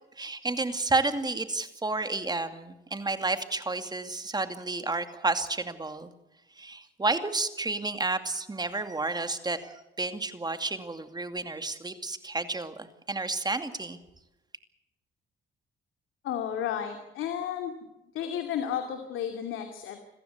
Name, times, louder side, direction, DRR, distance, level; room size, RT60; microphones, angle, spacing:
voice 1, 0.2-6.1 6.6-14.0, right 3 dB, 20° right, 9 dB, 2.5 m, -31 dB
voice 2, 16.2-17.8 18.1-20.0, left 9 dB, 85° left, 5 dB, 2.6 m, -32 dB
27.0 x 15.0 x 8.2 m, 0.97 s
cardioid pair, 90°, 20 cm